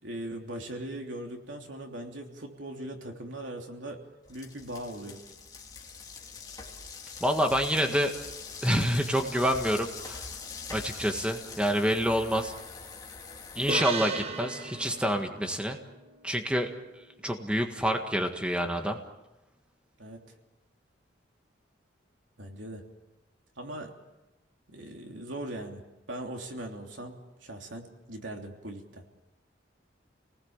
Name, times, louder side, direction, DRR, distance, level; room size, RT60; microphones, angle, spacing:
voice 1, 0.0-4.0 4.3-5.2 20.0-20.2 22.4-22.8 23.6-23.9 24.7-29.0, right 1 dB, 80° right, 2 dB, 3.1 m, -40 dB
bike tire scrapped while spinning, 4.3-13.8, left 5 dB, 20° left, 2.5 m, -43 dB
voice 2, 7.2-8.1 8.6-10.2 10.7-12.5 13.5-15.8 16.2-16.7 17.2-19.0, equal, 5° right, 4 dB, 1.7 m, -27 dB
sound 1, 13.7-17.2, right 3 dB, 35° right, 1.2 m, -37 dB
29.5 x 19.5 x 7.3 m, 1.0 s
head